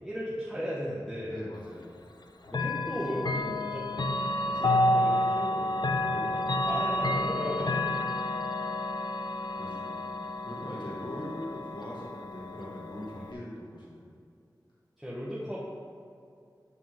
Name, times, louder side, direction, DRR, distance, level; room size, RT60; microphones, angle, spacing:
voice 1, 0.0-1.4 2.5-4.2 4.5-6.0 6.7-7.9 13.2-13.3 15.0-15.6, equal, ahead, -8 dB, 1.8 m, -36 dB
voice 2, 1.3-1.9 4.4-4.6 6.1-6.6 9.5-10.1 10.4-14.1, left 1 dB, 80° left, -6 dB, 2.2 m, -41 dB
Chime / Clock, 2.5-13.3, left 1 dB, 65° left, 0.6 m, -30 dB
12.5 x 5.9 x 3.8 m, 2.4 s
cardioid pair, 40°, 8 cm